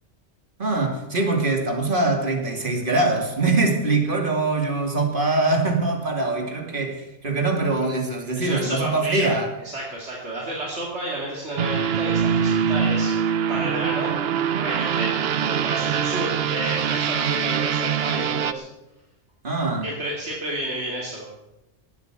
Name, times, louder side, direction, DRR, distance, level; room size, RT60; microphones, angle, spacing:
voice 1, 0.6-9.5 19.4-19.9, right 2 dB, 50° right, 3 dB, 2.6 m, -23 dB
voice 2, 8.3-9.3 9.6-13.1 13.5-14.1 14.6-18.6 19.8-21.3, right 1 dB, 85° right, -3 dB, 3.0 m, -31 dB
sound 1, 11.6-18.5, right 8 dB, 65° right, 0.9 m, -23 dB
18.0 x 8.1 x 8.2 m, 0.95 s
omnidirectional pair, 1.1 m